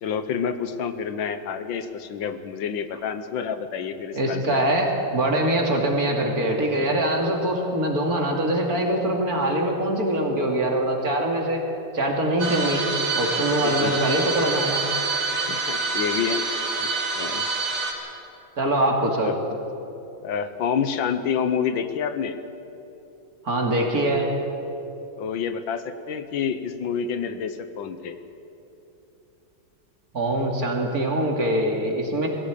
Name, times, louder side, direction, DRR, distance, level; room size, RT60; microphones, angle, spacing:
voice 1, 0.0-4.6 9.2-9.3 13.6-14.0 15.4-16.4 16.8-16.9 17.2-17.4 19.2-19.3 20.2-22.4 25.2-28.2, left 7 dB, 80° left, 10 dB, 1.7 m, -28 dB
voice 2, 4.1-11.6 11.9-12.8 13.1-14.8 18.6-19.4 23.4-24.3 30.1-32.3, right 1 dB, 50° right, 1 dB, 3.0 m, -23 dB
sound 1, 12.4-17.9, right 3 dB, 75° right, 3.7 m, -26 dB
21.0 x 16.5 x 8.4 m, 3.0 s
omnidirectional pair, 2.1 m